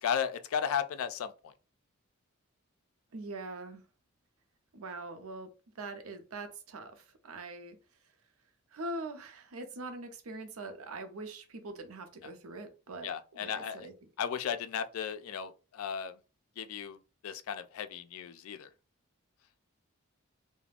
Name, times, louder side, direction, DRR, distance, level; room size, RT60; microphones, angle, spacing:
voice 1, 0.0-1.5 13.0-13.9 14.2-16.2 16.6-17.0 17.2-18.7, left 8 dB, 80° left, 0.3 m, -35 dB
voice 2, 3.1-3.8 4.7-5.5 5.7-7.8 8.0-8.1 8.7-13.9, right 2 dB, 85° right, 0.6 m, -43 dB
2.4 x 2.1 x 3.2 m
head